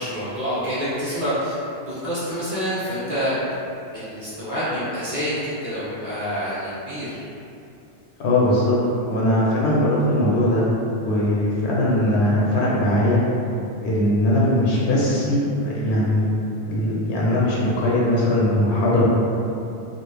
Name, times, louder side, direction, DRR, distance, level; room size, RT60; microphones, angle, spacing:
voice 1, 0.0-1.5 1.9-3.4 3.9-7.2, equal, 30° right, -12 dB, 0.9 m, -27 dB
voice 2, 8.2-8.8 9.1-10.6 11.1-13.2 13.8-16.3 16.7-19.0, left 1 dB, 70° left, -6 dB, 0.8 m, -20 dB
2.4 x 2.0 x 3.1 m, 2.7 s
omnidirectional pair, 1.2 m